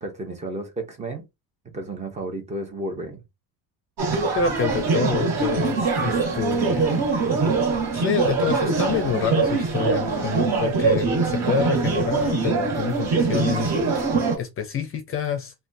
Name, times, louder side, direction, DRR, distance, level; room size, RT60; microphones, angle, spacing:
voice 1, 0.0-1.2 1.7-3.2, right 1 dB, 20° right, 0.6 m, -32 dB
sound 1, 4.0-14.3, right 4 dB, 45° right, 1.4 m, -23 dB
voice 2, 4.3-7.0 7.9-13.8 14.4-15.5, left 6 dB, 35° left, 0.5 m, -27 dB
3.3 x 2.3 x 2.6 m
cardioid pair, 170°, 37 cm